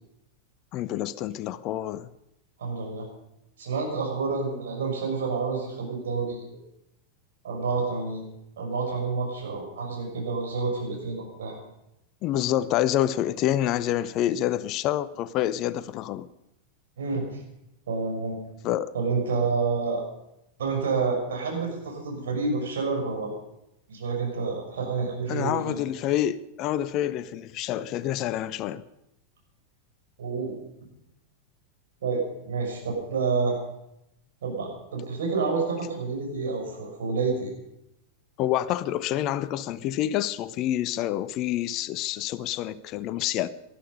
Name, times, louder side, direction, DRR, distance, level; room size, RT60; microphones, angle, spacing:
voice 1, 0.7-2.1 12.2-16.3 18.6-18.9 25.3-28.8 38.4-43.5, left 12 dB, 40° left, 0.6 m, -27 dB
voice 2, 2.6-3.1 3.6-6.6 7.4-8.2 8.6-11.6 17.0-17.4 17.9-18.4 18.9-20.0 20.6-23.3 23.9-25.8 30.2-30.6 32.0-33.6 34.4-37.5, right 4 dB, 60° right, 6.4 m, -29 dB
19.0 x 13.0 x 5.4 m
figure-of-eight pair, 90°, 0 cm